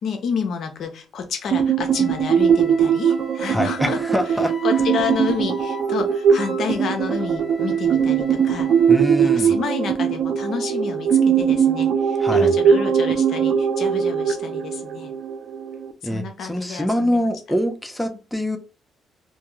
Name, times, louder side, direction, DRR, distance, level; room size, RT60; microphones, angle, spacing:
voice 1, 0.0-4.0 4.6-8.7 9.2-15.1 16.0-17.3 18.0-18.2, left 6 dB, 65° left, 6 dB, 0.6 m, -30 dB
sound 1, 1.5-15.9, right 7 dB, 60° right, 0.3 m, -20 dB
Wind instrument woodwind instrument, 1.9-9.0, left 4 dB, 35° left, 0.7 m, -40 dB
voice 2, 3.5-4.5 8.9-9.6 12.2-12.5 16.0-18.6, equal, ahead, 5 dB, 0.5 m, -24 dB
2.2 x 2.2 x 2.9 m, 0.32 s
cardioid pair, 90°, 0 cm